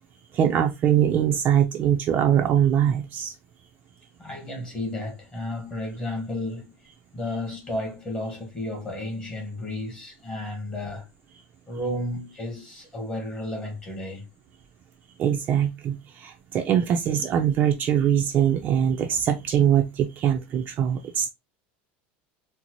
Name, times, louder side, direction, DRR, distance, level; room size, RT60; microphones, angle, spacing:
voice 1, 0.3-3.3 15.2-21.3, right 9 dB, 30° right, 0.4 m, -22 dB
voice 2, 4.2-6.7 7.1-11.1 11.7-14.3, left 1 dB, 20° left, 1.2 m, -32 dB
3.9 x 2.0 x 2.9 m
supercardioid pair, 155°, 5 cm